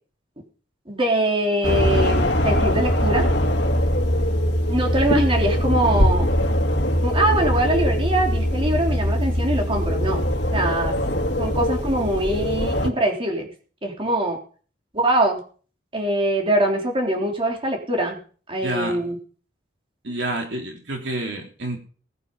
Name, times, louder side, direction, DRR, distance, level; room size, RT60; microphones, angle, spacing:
voice 1, 0.9-3.3 4.7-6.3 7.0-10.2 10.5-11.0 11.4-13.5 13.8-14.4 14.9-15.4 15.9-18.2 18.5-19.2, right 1 dB, 30° right, 1 dB, 3.7 m, -23 dB
sound 1, 1.6-12.9, equal, 65° left, 2.3 m, -21 dB
voice 2, 18.6-19.0 20.0-21.8, right 2 dB, 70° right, 2 dB, 3.4 m, -28 dB
19.5 x 9.3 x 5.6 m, 0.42 s
head